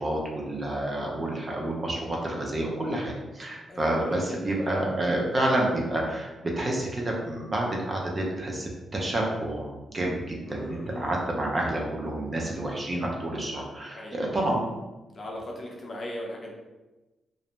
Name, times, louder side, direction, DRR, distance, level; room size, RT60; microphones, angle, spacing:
voice 1, 0.0-14.6, right 1 dB, 30° right, -1 dB, 0.5 m, -29 dB
voice 2, 3.7-4.9 10.5-11.2 12.5-12.6 13.9-14.5 15.1-16.5, left 1 dB, 40° left, -2 dB, 0.6 m, -38 dB
2.5 x 2.1 x 3.0 m, 1.1 s
cardioid pair, 100°, 0 cm